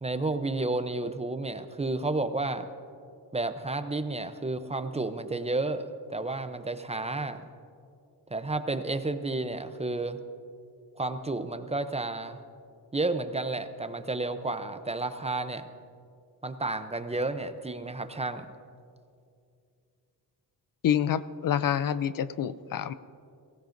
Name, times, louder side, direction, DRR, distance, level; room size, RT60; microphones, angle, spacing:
voice 1, 0.0-2.7 3.3-7.4 8.3-10.2 11.0-12.4 12.9-15.7 16.4-18.5, right 2 dB, 15° right, 9 dB, 0.5 m, -31 dB
voice 2, 20.8-22.9, left 9 dB, 60° left, 15 dB, 0.5 m, -27 dB
23.5 x 16.0 x 2.6 m, 2.4 s
wide cardioid pair, 125°, 39 cm